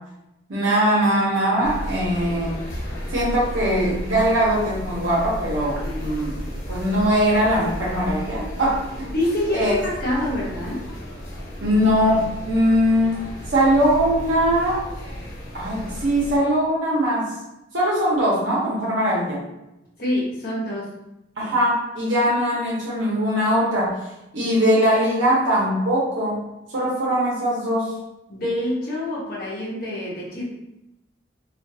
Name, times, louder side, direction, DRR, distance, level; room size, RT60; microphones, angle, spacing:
voice 1, 0.5-2.6 3.1-6.3 6.7-9.1 9.5-9.7 11.6-13.2 13.5-14.8 15.5-17.3 17.7-19.4 21.4-24.0 24.3-26.4 26.7-27.9, equal, 80° right, -6 dB, 0.8 m, -21 dB
sound 1, 1.6-16.4, equal, 90° left, 0.9 m, -33 dB
voice 2, 5.8-6.6 9.1-10.8 20.0-20.9 28.3-30.4, left 1 dB, 55° left, -5 dB, 0.9 m, -26 dB
2.4 x 2.3 x 2.7 m, 0.90 s
head